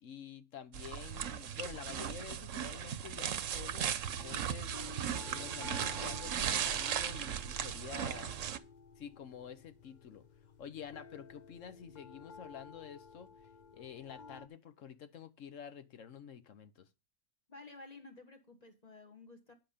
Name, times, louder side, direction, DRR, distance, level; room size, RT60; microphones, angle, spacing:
voice 1, 0.0-4.9 5.1-8.3 9.0-10.3 10.6-13.3 13.7-16.9, left 8 dB, 65° left, 1.2 m, -49 dB
sound 1, 0.7-8.6, right 9 dB, 70° right, 1.1 m, -37 dB
sound 2, 4.1-14.5, left 4 dB, 45° left, 0.6 m, -53 dB
voice 2, 17.5-19.5, left 3 dB, 30° left, 1.6 m, -53 dB
9.9 x 7.9 x 5.1 m
omnidirectional pair, 1.4 m